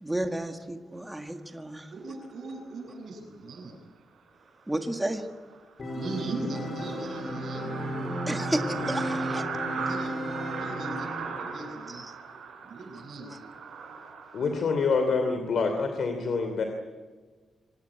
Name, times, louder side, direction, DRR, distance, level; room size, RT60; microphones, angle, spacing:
voice 1, 0.0-1.9 4.7-5.3 8.3-9.4 11.9-12.1, right 1 dB, 10° right, 5 dB, 1.7 m, -32 dB
voice 2, 1.9-3.8 5.9-7.7 9.7-10.2 10.5-12.0 12.6-13.3, right 3 dB, 55° right, 1 dB, 8.0 m, -39 dB
sound 1, 4.7-4.8 5.2-5.3 5.5-5.6 5.9-14.6, right 5 dB, 75° right, 5.3 m, -38 dB
Organ, 5.8-11.5, equal, 40° left, 4.0 m, -34 dB
voice 3, 14.3-16.6, left 4 dB, 60° left, 5 dB, 3.0 m, -26 dB
25.5 x 18.5 x 8.9 m, 1.4 s
wide cardioid pair, 130°, 0 cm